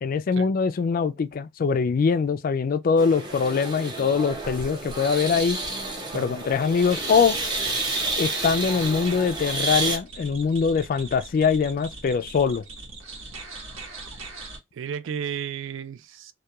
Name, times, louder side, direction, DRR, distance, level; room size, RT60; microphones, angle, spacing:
voice 1, 0.0-5.6 6.1-7.4 8.2-12.6, left 5 dB, 45° left, 0.3 m, -23 dB
sound 1, 3.0-10.0, right 2 dB, 20° right, 0.7 m, -30 dB
sound 2, 6.8-14.6, right 3 dB, 85° right, 0.9 m, -40 dB
voice 2, 14.7-16.3, right 8 dB, 65° right, 0.3 m, -33 dB
2.3 x 2.2 x 2.8 m
head